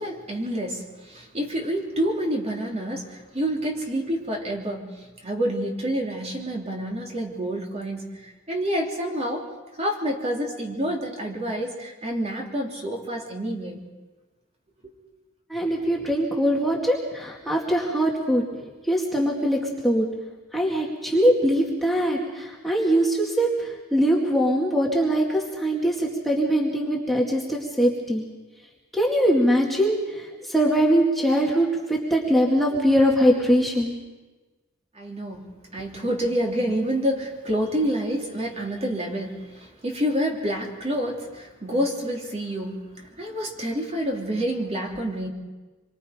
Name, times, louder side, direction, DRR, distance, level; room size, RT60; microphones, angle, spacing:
voice 1, 0.0-9.5 9.8-13.8 14.8-14.9 34.9-45.3, equal, 30° right, 0 dB, 3.1 m, -28 dB
voice 2, 15.5-18.4 18.9-20.1 20.5-28.2 28.9-33.9, equal, ahead, -3 dB, 2.2 m, -22 dB
26.5 x 23.5 x 5.1 m, 1.2 s
head